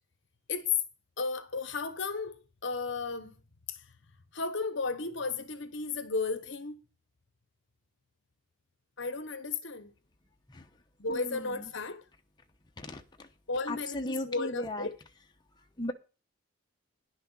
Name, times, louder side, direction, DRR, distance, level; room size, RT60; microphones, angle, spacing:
voice 1, 1.2-2.3 2.6-3.4 3.7-3.8 4.3-6.8 9.0-9.9 11.0-12.0 13.5-15.0, left 4 dB, 60° left, 1.1 m, -34 dB
voice 2, 13.7-14.9 15.8-15.9, left 1 dB, 20° left, 1.0 m, -36 dB
10.5 x 6.5 x 6.3 m
head